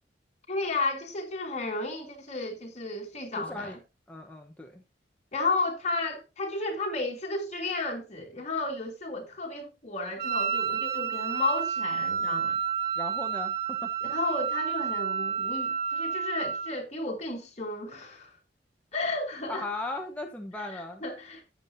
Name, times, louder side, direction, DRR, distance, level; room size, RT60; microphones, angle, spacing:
voice 1, 0.5-3.8 5.3-12.6 14.1-18.3 18.9-19.7 21.0-21.4, left 2 dB, 40° left, 3.0 m, -33 dB
voice 2, 3.4-3.8 4.1-4.8 13.0-13.9 19.5-21.0, left 2 dB, 10° left, 1.0 m, -37 dB
Wind instrument woodwind instrument, 10.2-16.8, right 8 dB, 60° right, 1.5 m, -30 dB
13.5 x 8.4 x 2.7 m
head